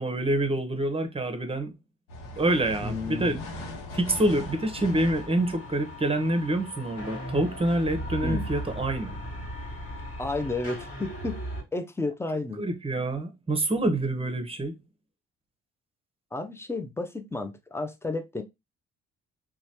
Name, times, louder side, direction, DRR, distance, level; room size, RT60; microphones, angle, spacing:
voice 1, 0.0-1.7 2.3-3.4 3.9-9.1 12.6-14.7, right 1 dB, 20° right, 0.8 m, -26 dB
sound 1, 2.1-10.1, left 1 dB, 80° left, 0.9 m, -42 dB
voice 2, 2.8-3.4 8.2-8.5 10.2-11.4 11.7-12.6 16.3-18.4, left 2 dB, 10° left, 0.5 m, -32 dB
sound 2, 4.3-11.6, equal, 55° left, 1.6 m, -37 dB
3.0 x 2.3 x 2.8 m
hypercardioid pair, 55°, 31 cm